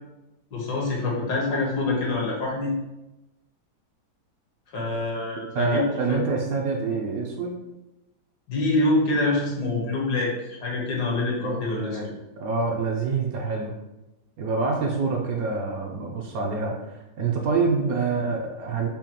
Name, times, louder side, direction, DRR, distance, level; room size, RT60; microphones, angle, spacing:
voice 1, 0.5-2.7 4.7-6.2 8.5-12.0, left 2 dB, 75° left, -2 dB, 1.6 m, -25 dB
voice 2, 5.5-7.6 11.4-12.0 12.4-13.7 14.4-18.9, right 4 dB, 70° right, 0 dB, 0.9 m, -26 dB
5.7 x 2.2 x 2.9 m, 0.99 s
omnidirectional pair, 1.8 m